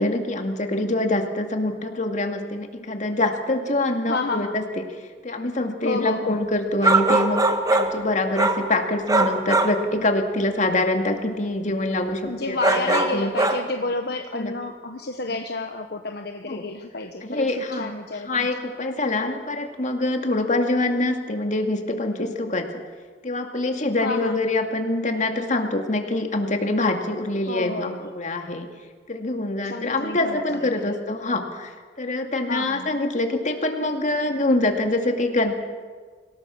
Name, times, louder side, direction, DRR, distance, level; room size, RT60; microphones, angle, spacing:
voice 1, 0.0-4.8 5.2-7.4 7.7-13.3 14.3-14.5 16.5-16.7 17.2-17.9 18.3-22.8 23.2-28.7 29.1-35.6, left 2 dB, 45° left, 5 dB, 2.3 m, -25 dB
voice 2, 4.1-4.6 5.8-6.4 12.2-18.5 24.0-24.5 27.5-28.1 29.6-31.0 32.5-32.9, left 3 dB, 60° left, 5 dB, 1.1 m, -30 dB
sound 1, 6.8-8.0 8.4-8.7 9.1-9.8 12.6-13.6, right 2 dB, 20° right, 1.5 m, -21 dB
25.0 x 17.5 x 7.2 m, 1.5 s
head